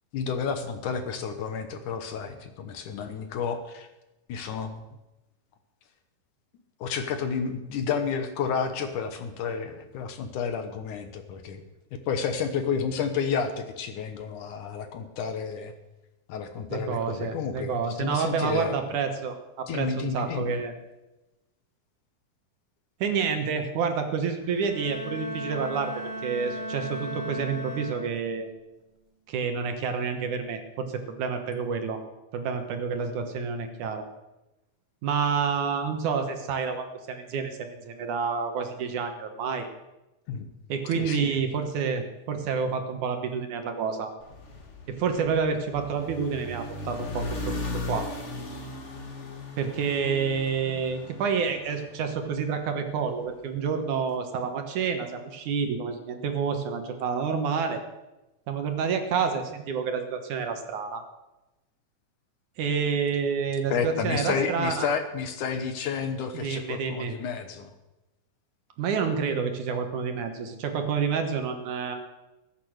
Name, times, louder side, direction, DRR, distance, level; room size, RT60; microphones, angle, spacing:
voice 1, 0.1-3.9 4.3-4.8 6.8-11.6 11.9-15.7 16.3-18.8 19.7-20.6 40.3-40.5 40.9-41.4 63.7-67.7, left 6 dB, 70° left, 8 dB, 2.3 m, -31 dB
voice 2, 16.7-20.7 23.0-28.5 29.3-32.0 32.3-34.1 35.0-39.7 40.7-44.1 44.9-48.1 49.6-57.8 58.5-61.0 62.6-64.9 66.3-67.1 68.8-72.0, right 6 dB, 65° right, 6 dB, 2.5 m, -29 dB
Bowed string instrument, 24.4-28.5, equal, 20° right, 1.2 m, -36 dB
sound 1, 44.2-52.6, left 2 dB, 90° left, 0.6 m, -37 dB
20.5 x 8.9 x 6.5 m, 1.0 s
omnidirectional pair, 4.2 m